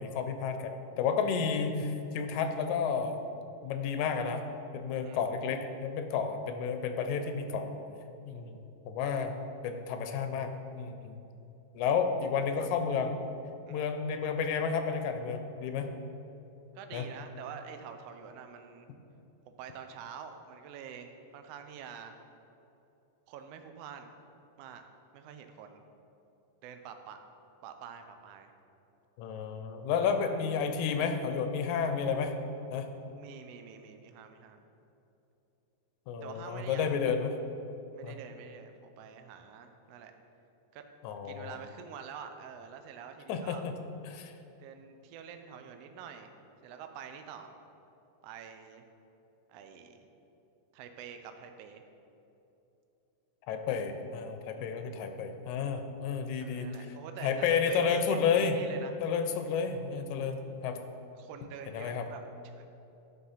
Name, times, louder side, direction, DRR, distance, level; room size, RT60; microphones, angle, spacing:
voice 1, 0.0-3.2 3.6-4.4 4.7-7.7 8.3-8.6 8.9-9.4 9.6-11.1 11.7-13.1 13.7-15.9 16.9-17.1 29.2-32.4 32.7-32.9 36.1-37.4 38.0-38.2 41.0-41.6 43.3-43.8 44.0-44.3 53.4-56.7 57.2-58.6 59.0-60.8 61.7-62.1, left 6 dB, 90° left, 7 dB, 2.1 m, -31 dB
voice 2, 16.7-18.9 19.5-22.2 23.3-24.1 24.6-24.8 25.1-25.8 26.6-27.2 27.6-28.5 30.1-30.2 33.2-34.6 36.2-37.0 37.9-40.1 40.7-40.8 41.2-43.6 44.6-46.3 46.6-47.5 48.2-48.8 49.5-50.1 50.7-51.8 54.5-54.9 56.4-59.0 61.2-62.7, right 7 dB, 75° right, 6 dB, 1.5 m, -47 dB
11.5 x 3.9 x 5.5 m, 2.9 s
omnidirectional pair, 3.3 m